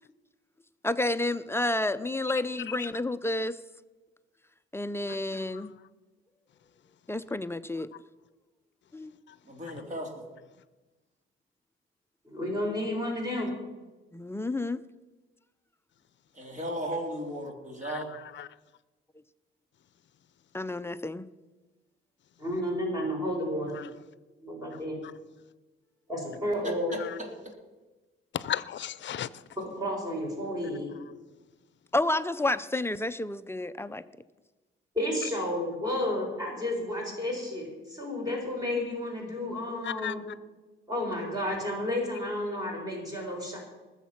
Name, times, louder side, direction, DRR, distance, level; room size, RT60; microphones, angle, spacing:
voice 1, 0.8-3.6 4.7-5.7 7.1-7.9 8.9-9.2 14.1-14.8 20.5-21.3 31.9-34.0, left 2 dB, 10° left, 12 dB, 0.5 m, -30 dB
voice 2, 2.6-2.9 5.1-5.2 5.5-5.7 9.3-9.4 9.7-9.8 17.8-18.5 23.7-23.9 24.7-24.8 27.0-27.2 28.3-29.4 39.8-40.1, left 10 dB, 60° left, 17 dB, 0.6 m, -36 dB
voice 3, 9.4-10.2 16.3-18.1 26.6-27.5, equal, 35° right, 2 dB, 3.3 m, -36 dB
voice 4, 12.2-13.5 22.4-23.8 24.4-25.0 26.1-26.9 29.6-30.9 34.9-40.2 40.9-43.6, left 1 dB, 15° right, -1 dB, 4.4 m, -31 dB
20.0 x 7.3 x 5.9 m, 1.2 s
cardioid pair, 100°, 21 cm